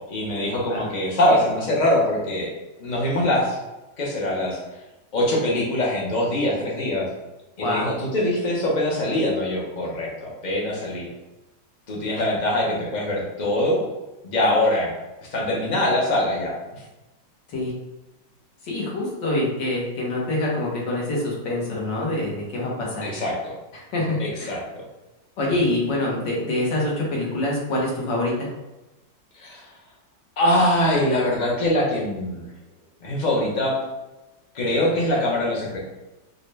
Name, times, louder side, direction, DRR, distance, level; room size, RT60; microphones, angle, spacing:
voice 1, 0.1-2.5 2.8-3.6 4.0-4.6 5.1-7.1 7.6-11.1 11.9-13.8 14.2-14.9 15.3-16.5 23.0-23.5 24.2-24.6 29.4-29.7 30.4-32.5 33.0-33.8 34.5-35.8, left 1 dB, 45° left, -3 dB, 0.5 m, -23 dB
voice 2, 7.6-7.9 17.5-17.7 18.6-23.2 23.7-24.6 25.4-28.5, left 1 dB, 80° left, -3 dB, 1.7 m, -25 dB
4.7 x 2.2 x 3.2 m, 1.0 s
omnidirectional pair, 2.0 m